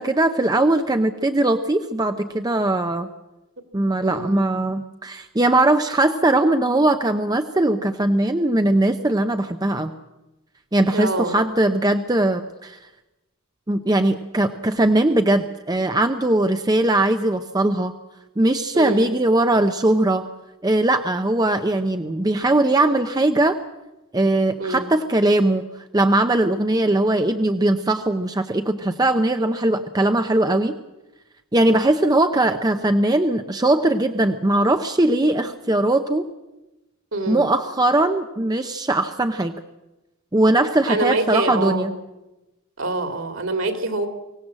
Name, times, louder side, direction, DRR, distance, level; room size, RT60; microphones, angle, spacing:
voice 1, 0.0-3.1 3.7-9.9 10.7-12.8 13.7-17.9 18.4-20.2 20.6-23.6 24.1-25.6 25.9-30.7 31.5-36.3 37.3-39.5 40.3-41.9, right 1 dB, 20° right, 7 dB, 0.6 m, -20 dB
voice 2, 4.0-4.4 10.9-11.4 18.7-19.1 24.6-24.9 37.1-37.4 40.9-41.9 42.8-44.1, right 2 dB, 60° right, 7 dB, 2.6 m, -25 dB
24.5 x 17.0 x 7.5 m, 1.0 s
head